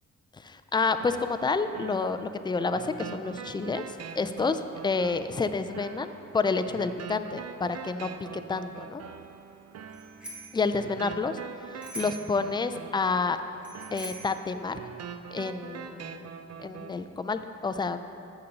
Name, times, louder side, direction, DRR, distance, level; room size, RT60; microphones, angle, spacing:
voice 1, 0.4-3.8 4.1-9.0 10.5-11.4 11.9-13.4 13.9-14.8 15.3-16.3 16.6-18.0, left 4 dB, 15° left, 10 dB, 0.3 m, -29 dB
sound 1, 1.0-17.0, right 7 dB, 50° right, 0.5 m, -44 dB
Bicycle bell, 9.9-10.6 11.8-12.4 13.6-14.4, right 1 dB, 5° right, 1.8 m, -41 dB
6.9 x 6.8 x 5.3 m, 2.6 s
cardioid pair, 85°, 32 cm